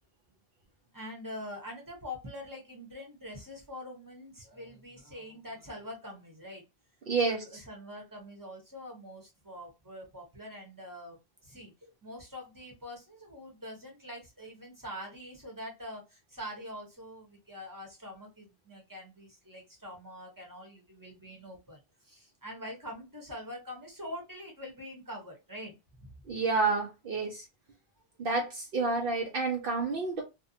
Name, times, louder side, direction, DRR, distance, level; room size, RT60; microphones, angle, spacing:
voice 1, 0.9-6.6 7.2-11.2 11.4-26.1, left 1 dB, 20° right, 0.8 m, -44 dB
voice 2, 7.1-7.4 26.3-27.5 28.2-30.2, right 4 dB, 60° right, 0.7 m, -29 dB
2.5 x 2.2 x 2.5 m
omnidirectional pair, 1.1 m